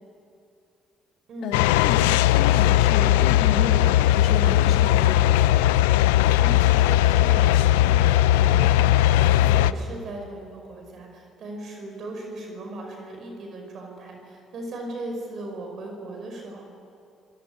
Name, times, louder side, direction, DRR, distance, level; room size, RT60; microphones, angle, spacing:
voice 1, 1.4-2.0 2.3-5.8 9.5-9.7, left 5 dB, 70° left, 3 dB, 3.0 m, -32 dB
sound 1, 1.5-9.7, left 13 dB, 85° left, 0.5 m, -18 dB
voice 2, 6.3-16.6, right 1 dB, 60° right, 3 dB, 5.4 m, -38 dB
24.5 x 18.5 x 9.8 m, 2.5 s
hypercardioid pair, 55°, 0 cm